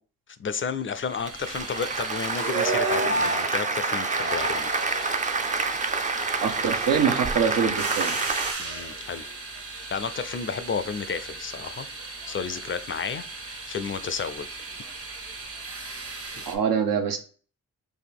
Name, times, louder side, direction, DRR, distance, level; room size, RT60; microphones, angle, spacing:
voice 1, 0.4-4.7 8.6-9.3 9.9-14.6, left 6 dB, 40° left, 0.4 m, -32 dB
sound 1, 1.0-16.6, right 2 dB, 45° right, 1.0 m, -34 dB
Applause, 1.1-8.5, right 4 dB, 25° right, 0.4 m, -28 dB
voice 2, 6.4-8.2 16.5-17.2, right 7 dB, 85° right, 0.7 m, -24 dB
4.1 x 2.5 x 3.5 m
cardioid pair, 65°, 33 cm